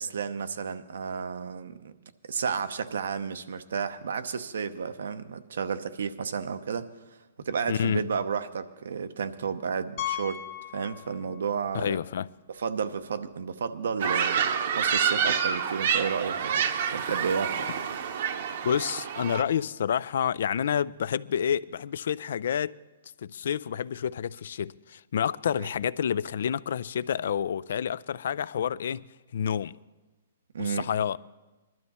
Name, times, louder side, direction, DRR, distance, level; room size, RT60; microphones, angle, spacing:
voice 1, 0.0-1.9 2.3-10.4 10.7-12.0 12.5-17.7 25.6-25.7 30.5-30.9, right 6 dB, 80° right, 0.8 m, -32 dB
voice 2, 7.7-8.1 11.7-12.3 18.6-22.8 23.2-29.1 29.3-29.8 30.6-31.2, left 8 dB, 65° left, 0.4 m, -29 dB
Piano, 10.0-11.6 11.8-12.0 12.6-12.7 12.9-13.0 15.1-15.2, left 12 dB, 40° left, 1.5 m, -36 dB
sound 1, 14.0-19.4, right 7 dB, 55° right, 0.9 m, -28 dB
20.0 x 12.5 x 4.2 m
hypercardioid pair, 160°, 0 cm